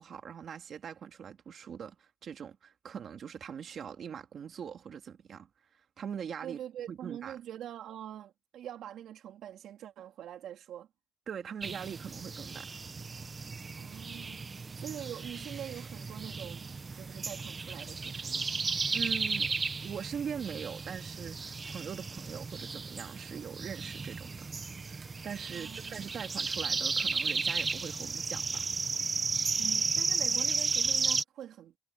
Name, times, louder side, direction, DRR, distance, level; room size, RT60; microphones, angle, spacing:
voice 1, 0.0-5.5 6.0-6.6 6.9-7.4 11.3-12.8 18.9-19.5 19.8-24.5 24.8-28.7, right 7 dB, 50° right, 2.6 m, -42 dB
voice 2, 6.4-10.9 13.8-16.7 17.0-18.5 25.5-26.0 29.6-31.8, right 11 dB, 80° right, 3.5 m, -44 dB
sound 1, 11.6-31.2, right 4 dB, 25° right, 1.1 m, -34 dB
cardioid pair, 140°, 0 cm